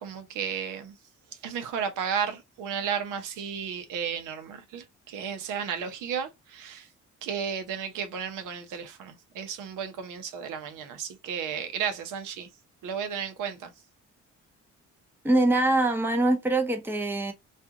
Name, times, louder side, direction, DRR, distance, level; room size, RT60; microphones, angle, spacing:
voice 1, 0.0-1.0 1.3-6.9 7.2-12.5 12.8-13.7, right 7 dB, 85° right, 0.7 m, -33 dB
voice 2, 15.2-17.3, right 2 dB, 5° right, 0.7 m, -23 dB
2.4 x 2.4 x 2.7 m
cardioid pair, 90°, 30 cm